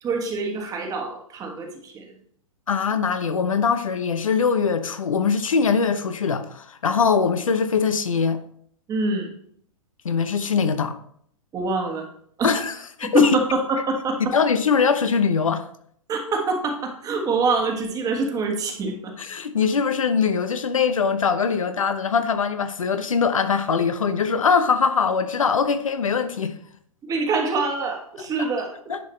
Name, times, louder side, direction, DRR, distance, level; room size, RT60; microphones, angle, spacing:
voice 1, 0.0-2.2 8.9-9.3 11.5-12.1 12.4-12.6 13.0-14.3 16.1-19.1 27.0-29.0, right 3 dB, 20° right, 1.5 m, -25 dB
voice 2, 2.7-8.4 10.0-11.0 12.4-12.7 13.0-13.3 14.3-15.6 19.2-26.5 28.9-29.0, left 5 dB, 75° left, 0.8 m, -22 dB
10.0 x 5.6 x 3.2 m
figure-of-eight pair, 115°, 17 cm